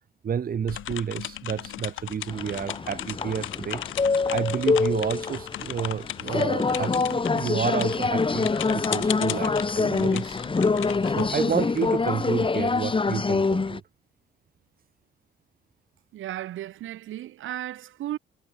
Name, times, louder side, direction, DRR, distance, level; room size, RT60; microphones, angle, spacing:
voice 1, 0.2-3.8 4.3-10.4 11.0-13.8, right 7 dB, 45° right, 1.9 m, -30 dB
sound 1, 0.7-12.2, left 13 dB, 80° left, 1.8 m, -37 dB
sound 2, 2.3-13.8, left 4 dB, 25° left, 2.3 m, -25 dB
voice 2, 16.1-18.2, right 13 dB, 80° right, 4.0 m, -35 dB
cardioid pair, 90°, 20 cm